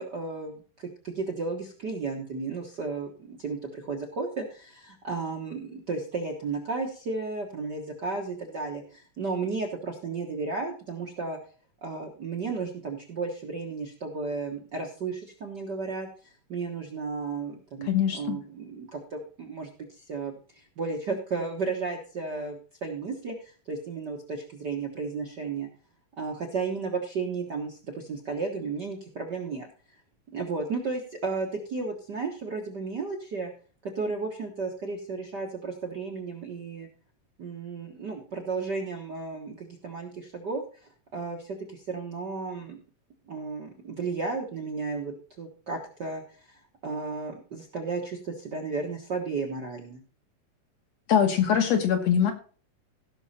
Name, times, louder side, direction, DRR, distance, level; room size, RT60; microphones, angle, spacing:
voice 1, 0.0-11.4 11.8-25.7 26.2-29.7 30.3-33.5 33.8-36.9 37.4-40.6 41.1-42.8 43.3-46.2 46.5-50.0, right 4 dB, 50° right, 2 dB, 1.3 m, -34 dB
voice 2, 17.9-18.4 51.1-52.3, left 8 dB, 60° left, 5 dB, 2.2 m, -22 dB
16.5 x 6.4 x 4.2 m, 0.40 s
omnidirectional pair, 3.7 m